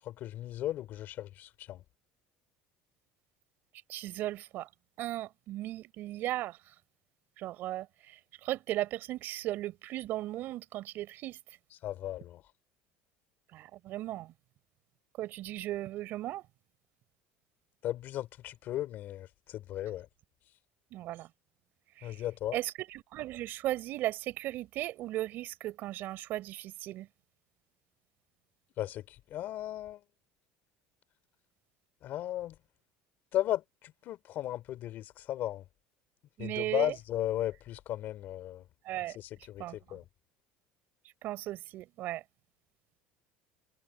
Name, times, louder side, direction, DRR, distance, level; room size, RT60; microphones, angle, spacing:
voice 1, 0.0-1.8 11.8-12.4 17.8-20.1 22.0-22.6 28.8-30.0 32.0-32.6 33.3-35.7 36.4-38.6 39.1-40.0, left 13 dB, 50° left, 3.3 m, -36 dB
voice 2, 3.9-4.7 5.0-6.6 7.4-11.4 13.5-14.3 15.2-16.4 20.9-21.3 22.0-22.2 22.5-22.7 23.1-27.1 36.4-37.0 38.8-39.2 39.6-40.0 41.2-42.2, right 15 dB, 55° right, 4.6 m, -36 dB
cardioid pair, 140°, 4 cm